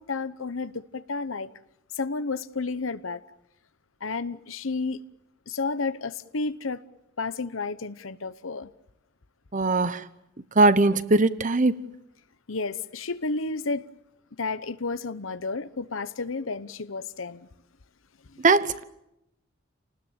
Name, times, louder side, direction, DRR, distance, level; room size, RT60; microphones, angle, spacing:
voice 1, 0.0-1.5 1.9-3.2 4.0-5.0 5.5-6.8 7.2-8.7 12.5-13.9 14.4-17.5 18.3-18.4, left 3 dB, 90° left, 1.0 m, -31 dB
voice 2, 9.5-10.0 10.6-11.7 18.4-18.8, right 3 dB, 40° right, 1.0 m, -20 dB
29.5 x 19.5 x 8.7 m
head